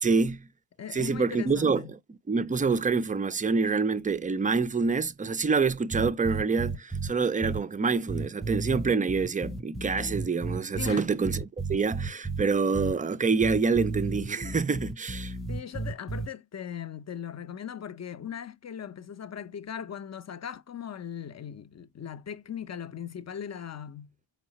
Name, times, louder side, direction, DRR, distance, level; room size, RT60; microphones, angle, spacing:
voice 1, 0.0-0.5 0.9-1.8 2.3-11.4 11.7-15.4, right 4 dB, 20° right, 0.3 m, -26 dB
voice 2, 0.8-1.9 10.8-11.1 15.5-24.1, left 8 dB, 35° left, 0.6 m, -39 dB
sound 1, 5.9-7.1 7.4-7.6 8.1-10.9 11.2-12.4 12.7-12.9 13.4-16.3, right 3 dB, ahead, 0.8 m, -33 dB
4.6 x 2.0 x 3.9 m
cardioid pair, 50°, 49 cm